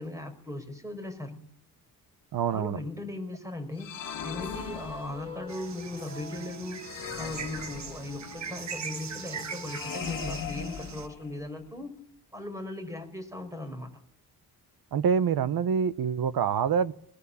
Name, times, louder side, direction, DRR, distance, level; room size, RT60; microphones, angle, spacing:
voice 1, 0.0-1.4 2.5-11.9 12.3-13.9, left 2 dB, 10° right, 8 dB, 4.9 m, -38 dB
voice 2, 2.3-2.8 14.9-16.9, right 7 dB, 65° right, 15 dB, 1.3 m, -26 dB
sound 1, 3.8-5.5 6.8-8.4 9.6-11.5, left 8 dB, 55° left, 1.7 m, -39 dB
sound 2, 4.3-10.6, left 3 dB, 15° left, 5.9 m, -46 dB
sound 3, 5.5-11.1, right 6 dB, 45° right, 1.5 m, -41 dB
21.5 x 21.0 x 8.7 m, 0.69 s
cardioid pair, 130°, 39 cm